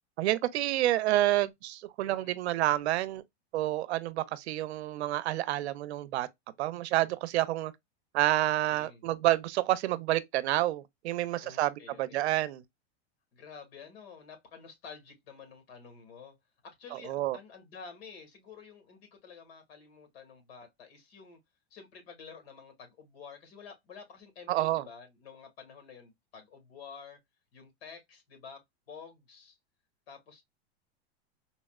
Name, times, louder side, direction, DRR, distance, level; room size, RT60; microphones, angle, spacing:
voice 1, 0.2-3.2 3.5-6.3 6.6-7.7 8.1-11.7 12.0-12.6 17.1-17.4 24.5-24.8, right 15 dB, 85° right, 0.6 m, -28 dB
voice 2, 2.0-2.4 8.7-9.0 11.4-12.3 13.3-16.4 16.6-21.4 21.7-27.2 27.5-29.6 30.1-30.4, left 6 dB, 75° left, 1.7 m, -50 dB
4.0 x 2.0 x 2.3 m
supercardioid pair, 160°, 32 cm